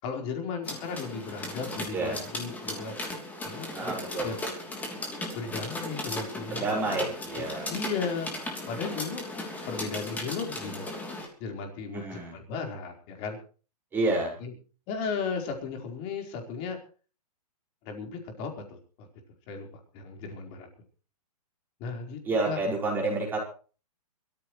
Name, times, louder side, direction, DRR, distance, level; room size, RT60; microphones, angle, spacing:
voice 1, 0.0-3.0 3.4-4.4 5.3-7.1 7.4-8.3 8.7-9.3 9.7-10.9 11.4-13.4 14.4-14.5 14.9-16.8 17.8-18.8 19.5-19.7 19.9-20.7 21.8-22.6, left 5 dB, 30° left, 3 dB, 4.4 m, -35 dB
sound 1, 0.6-11.3, left 1 dB, 10° left, 3.2 m, -36 dB
voice 2, 3.7-4.3 6.5-7.7 11.9-12.4 13.9-14.3 22.2-23.4, right 2 dB, 10° right, -2 dB, 5.6 m, -29 dB
23.5 x 14.0 x 3.2 m, 0.37 s
hypercardioid pair, 155°, 20 cm